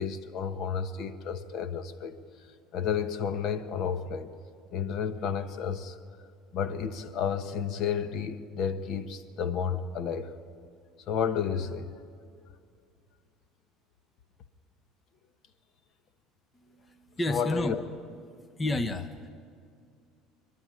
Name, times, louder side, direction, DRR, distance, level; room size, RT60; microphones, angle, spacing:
voice 1, 0.0-2.1 2.7-4.4 4.7-6.0 6.5-10.3 11.1-11.9 17.3-17.8, left 7 dB, 50° left, 11 dB, 1.1 m, -31 dB
voice 2, 16.5-17.8 18.2-19.3, left 1 dB, 15° left, 9 dB, 0.9 m, -32 dB
27.5 x 12.0 x 9.7 m, 2.3 s
cardioid pair, 145°, 0 cm